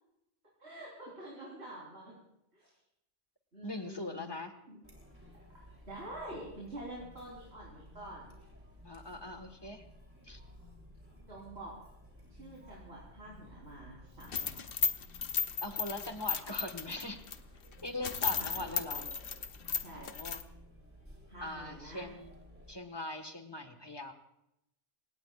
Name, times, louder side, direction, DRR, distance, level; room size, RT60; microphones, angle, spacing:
voice 1, 0.6-2.2 2.5-2.7 3.5-4.2 4.7-4.8 5.5-8.3 11.3-11.7 12.3-14.6 18.2-19.1 19.7-20.1 21.3-22.1, right 1 dB, 65° right, -6 dB, 4.4 m, -47 dB
voice 2, 3.6-4.5 8.8-9.8 10.2-10.4 15.6-17.2 17.8-19.0 19.9-20.4 21.4-22.3 22.7-24.1, left 2 dB, 20° left, 6 dB, 1.6 m, -41 dB
Chatter, 4.8-22.7, left 1 dB, 10° right, 3.4 m, -55 dB
sound 1, 14.2-17.4 17.7-17.8 18.0-20.4, left 6 dB, 55° left, 1.0 m, -34 dB
28.0 x 17.5 x 2.5 m, 0.83 s
omnidirectional pair, 1.2 m